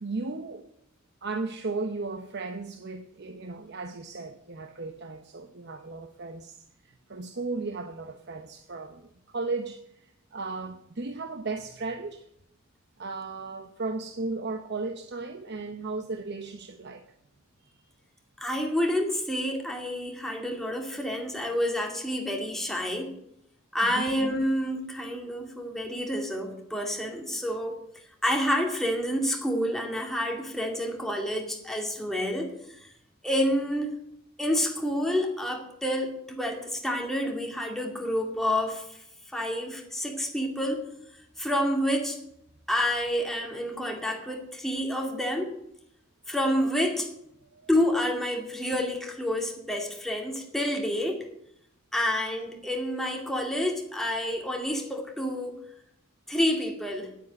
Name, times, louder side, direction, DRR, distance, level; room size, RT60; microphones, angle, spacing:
voice 1, 0.0-0.6 1.2-6.6 6.8-12.3 13.0-17.0 17.6-17.7 23.8-24.1 47.5-47.7, right 3 dB, 55° right, 0.8 m, -35 dB
voice 2, 18.4-23.1 23.7-27.8 28.2-32.9 33.2-34.0 34.4-39.0 39.3-40.8 41.4-42.2 42.7-45.5 46.3-47.1 47.7-51.2 51.9-55.6 56.3-57.1, equal, ahead, 2.3 m, -28 dB
10.5 x 9.5 x 8.8 m
head